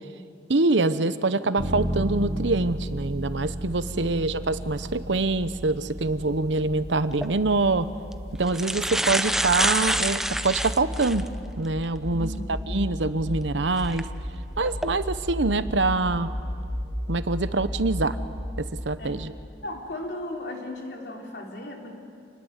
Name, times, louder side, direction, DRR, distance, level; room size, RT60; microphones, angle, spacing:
voice 1, 0.5-7.9 8.4-11.3 11.6-14.1 14.6-16.3 17.1-18.2 18.6-19.3, right 3 dB, 90° right, 13 dB, 1.0 m, -25 dB
sound 1, 1.6-11.3, equal, 60° right, 2.8 m, -35 dB
sound 2, 5.0-19.6, equal, 15° left, 4.6 m, -35 dB
sound 3, 7.1-7.3 8.1-8.2 8.5-11.3 11.8-11.9 13.8-14.0 14.6-14.9, right 1 dB, ahead, 0.7 m, -26 dB
voice 2, 12.1-12.6 19.0-19.2 19.6-21.9, left 1 dB, 65° left, 1 dB, 3.6 m, -36 dB
28.0 x 20.5 x 8.2 m, 2.4 s
head